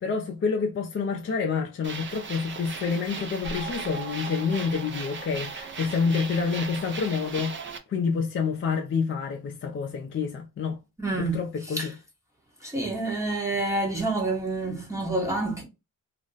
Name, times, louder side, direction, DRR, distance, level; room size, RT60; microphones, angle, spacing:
voice 1, 0.0-7.6 7.9-10.8 11.2-11.9, left 5 dB, 40° left, 0.4 m, -28 dB
sound 1, 1.8-7.8, right 5 dB, 35° right, 0.5 m, -37 dB
voice 2, 11.0-12.0 12.6-15.6, right 2 dB, 10° right, 0.8 m, -28 dB
2.4 x 2.0 x 3.8 m
wide cardioid pair, 140°, 33 cm